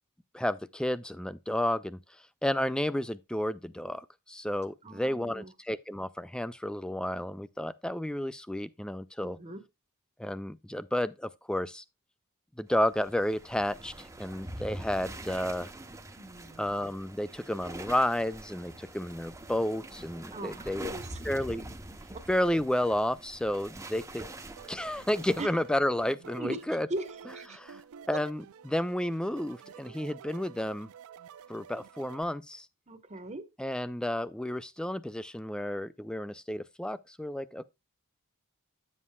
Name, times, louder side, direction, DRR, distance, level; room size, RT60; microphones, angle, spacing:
voice 1, 0.3-2.0 2.4-9.4 10.2-11.8 12.6-15.7 16.6-20.9 21.2-21.6 22.3-24.3 24.7-26.9 27.5-27.8 28.1-30.9 31.5-32.7 33.6-37.7, left 1 dB, 5° left, 0.3 m, -31 dB
voice 2, 4.8-5.5 9.2-9.6 16.2-16.7 20.3-21.2 22.1-22.2 25.4-25.5 26.4-26.6 26.9-27.6 28.1-28.2 32.9-33.4, right 2 dB, 30° right, 1.0 m, -39 dB
sound 1, 12.9-25.5, right 1 dB, 15° right, 0.7 m, -45 dB
sound 2, 24.6-32.2, right 7 dB, 70° right, 0.4 m, -50 dB
9.6 x 7.4 x 2.2 m
head